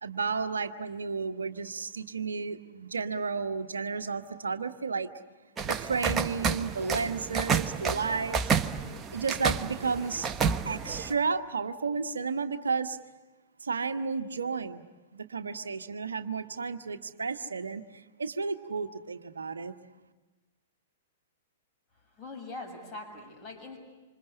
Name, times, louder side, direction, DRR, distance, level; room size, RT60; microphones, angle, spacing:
voice 1, 0.0-5.1 5.6-8.4 9.1-10.3 10.6-13.0 13.6-14.8 15.1-19.7, right 5 dB, 70° right, 8 dB, 1.2 m, -32 dB
sound 1, 5.6-11.1, right 6 dB, 20° right, 1.1 m, -30 dB
voice 2, 22.2-23.8, left 2 dB, 20° left, 2 dB, 7.0 m, -42 dB
27.5 x 26.5 x 8.0 m, 1.2 s
figure-of-eight pair, 105°, 0 cm